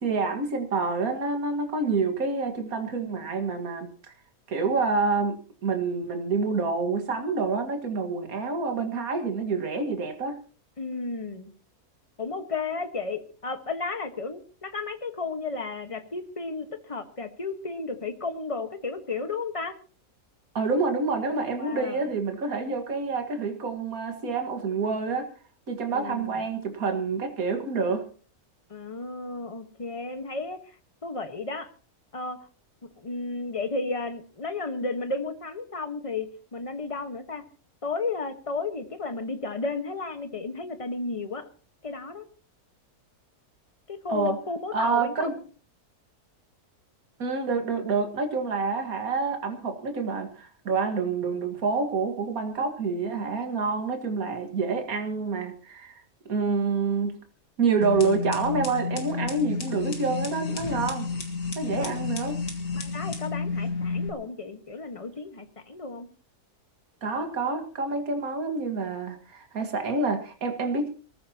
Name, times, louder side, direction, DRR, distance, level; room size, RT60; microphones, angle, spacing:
voice 1, 0.0-3.9 4.5-10.4 20.5-25.3 25.7-28.0 44.1-44.4 44.7-45.3 47.2-56.0 56.3-57.2 57.6-61.1 61.6-62.4 67.0-70.9, right 4 dB, 65° right, 6 dB, 2.2 m, -27 dB
voice 2, 10.8-11.5 12.2-19.8 21.6-22.1 25.9-26.5 28.7-30.8 31.0-31.7 32.1-32.4 32.8-37.4 37.8-41.5 41.8-42.2 43.9-45.3 61.8-62.0 62.7-66.1, left 3 dB, 25° left, 8 dB, 1.3 m, -33 dB
sound 1, 57.8-64.1, left 4 dB, 70° left, 2.4 m, -31 dB
24.0 x 14.5 x 2.9 m, 0.38 s
omnidirectional pair, 1.6 m